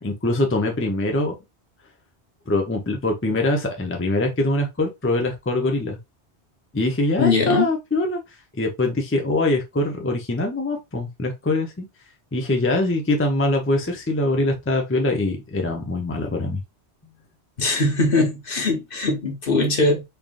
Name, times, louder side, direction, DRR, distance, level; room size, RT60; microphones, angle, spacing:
voice 1, 0.0-1.4 2.5-6.0 6.7-8.2 8.5-11.9 12.3-16.6, left 2 dB, 15° left, 0.6 m, -23 dB
voice 2, 7.2-7.7 17.6-20.0, left 3 dB, 55° left, 1.3 m, -21 dB
3.7 x 3.4 x 2.4 m
omnidirectional pair, 1.1 m